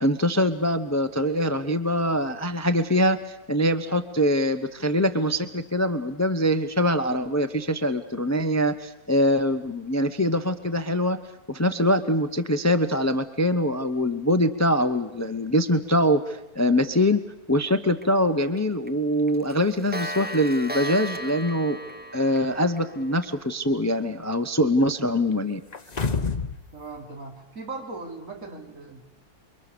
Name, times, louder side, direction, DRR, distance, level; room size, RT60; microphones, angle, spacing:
voice 1, 0.0-11.2 11.5-17.2 17.5-21.8 22.1-25.6, equal, 15° left, 10 dB, 0.7 m, -23 dB
Clock, 18.0-18.1 18.4-18.6 18.9-19.0 19.3-23.3, right 1 dB, 15° right, 0.3 m, -35 dB
sound 1, 25.7-26.6 26.9-27.0, left 4 dB, 30° left, 1.1 m, -27 dB
voice 2, 26.7-29.0, right 3 dB, 60° right, 1 dB, 3.5 m, -38 dB
29.0 x 23.0 x 6.9 m, 0.90 s
omnidirectional pair, 1.7 m